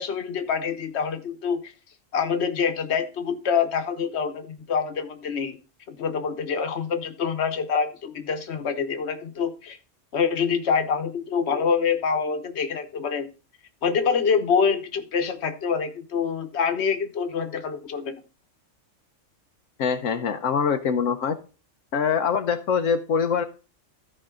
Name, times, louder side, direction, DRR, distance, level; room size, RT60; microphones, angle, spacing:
voice 1, 0.0-1.7 2.1-5.6 5.9-9.8 10.1-13.3 13.8-18.2, left 6 dB, 60° left, 7 dB, 1.3 m, -26 dB
voice 2, 19.8-21.4 21.9-23.4, left 6 dB, 85° left, 6 dB, 1.2 m, -24 dB
14.5 x 4.9 x 3.7 m, 0.34 s
omnidirectional pair, 1.3 m